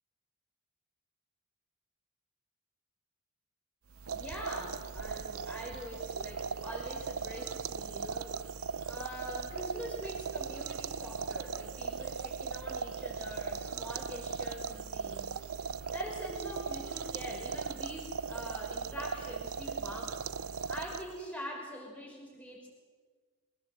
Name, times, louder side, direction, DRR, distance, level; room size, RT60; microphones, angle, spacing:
sound 1, 3.9-21.3, right 5 dB, 75° right, 0.7 m, -38 dB
voice 1, 4.1-8.5 8.8-15.4 15.9-22.7, equal, 5° left, -2 dB, 5.6 m, -44 dB
23.5 x 19.0 x 7.9 m, 1.5 s
head